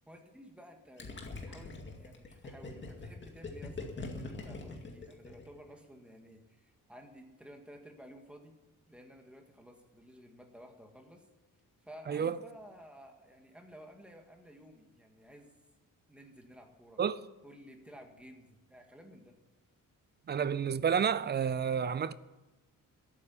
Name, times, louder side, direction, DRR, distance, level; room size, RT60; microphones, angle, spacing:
voice 1, 0.1-8.6 8.9-11.3 11.8-15.5 16.1-17.0 17.4-19.4, equal, 5° right, 1.9 m, -54 dB
Gurgling, 1.0-5.7, left 3 dB, 35° left, 2.2 m, -43 dB
voice 2, 12.1-12.4 17.0-17.2 20.3-22.1, right 7 dB, 30° right, 0.5 m, -30 dB
14.0 x 8.9 x 10.0 m
wide cardioid pair, 165°, 33 cm